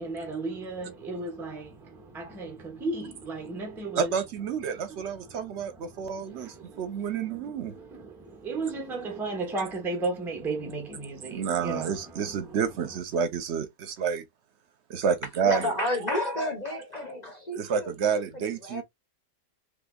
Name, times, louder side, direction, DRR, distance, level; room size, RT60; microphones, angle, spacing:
voice 1, 0.0-4.1 4.7-12.7, right 3 dB, ahead, 0.7 m, -35 dB
voice 2, 4.0-7.7 11.3-14.2 14.9-15.6 17.5-18.8, right 7 dB, 60° right, 0.7 m, -29 dB
voice 3, 15.4-18.8, left 1 dB, 40° left, 0.6 m, -31 dB
3.4 x 3.2 x 2.2 m
omnidirectional pair, 1.9 m